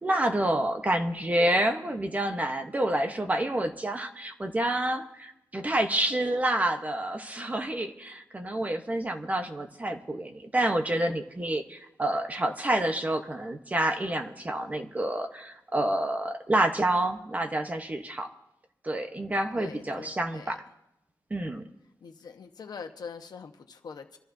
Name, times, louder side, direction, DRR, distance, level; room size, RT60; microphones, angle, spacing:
voice 1, 0.0-18.3 18.8-20.6 21.3-21.6, right 1 dB, 20° right, 5 dB, 0.9 m, -28 dB
voice 2, 19.6-20.6 22.0-24.2, left 5 dB, 70° left, 5 dB, 1.1 m, -43 dB
25.5 x 14.5 x 2.7 m, 0.87 s
wide cardioid pair, 170°, 7 cm